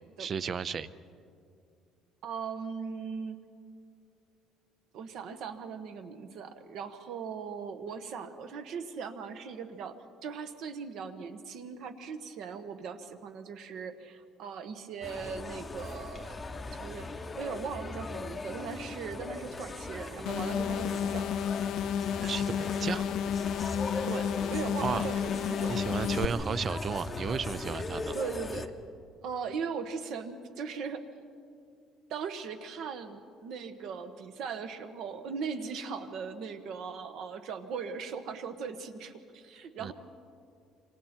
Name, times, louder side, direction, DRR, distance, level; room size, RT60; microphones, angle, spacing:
voice 1, 0.2-0.9 21.9-23.1 24.8-25.1 25.7-28.2 39.8-39.9, right 6 dB, 30° right, 17 dB, 0.5 m, -34 dB
voice 2, 2.2-3.4 4.9-17.1 17.4-21.5 24.0-25.8 26.2-26.4 28.1-28.7 29.2-31.0 32.1-39.9, right 6 dB, 55° right, 8 dB, 1.4 m, -39 dB
sound 1, 15.0-28.7, left 3 dB, 15° left, 0.9 m, -39 dB
sound 2, 20.3-26.3, left 8 dB, 55° left, 0.5 m, -31 dB
27.5 x 25.5 x 4.5 m, 2.4 s
cardioid pair, 170°, 0 cm